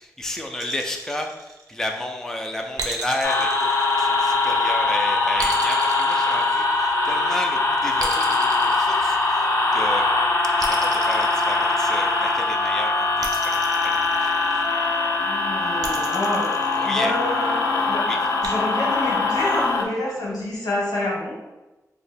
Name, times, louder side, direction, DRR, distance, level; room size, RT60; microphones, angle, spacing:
voice 1, 0.0-3.7 4.0-9.5 9.7-10.1 10.6-14.7 16.7-17.2 17.8-18.3, left 1 dB, 10° left, 3 dB, 0.3 m, -32 dB
sound 1, 0.6-2.0 2.8-4.6 5.4-7.1 8.0-9.7 10.6-12.2 13.2-14.8 15.8-17.3 18.4-18.5, right 3 dB, 85° right, 0.4 m, -35 dB
sound 2, 3.2-19.9, left 3 dB, 65° left, 0.5 m, -22 dB
voice 2, 15.2-16.5 16.8-18.0 18.4-21.3, left 1 dB, 85° left, -4 dB, 1.0 m, -27 dB
2.6 x 2.1 x 4.0 m, 1.0 s
wide cardioid pair, 85°, 6 cm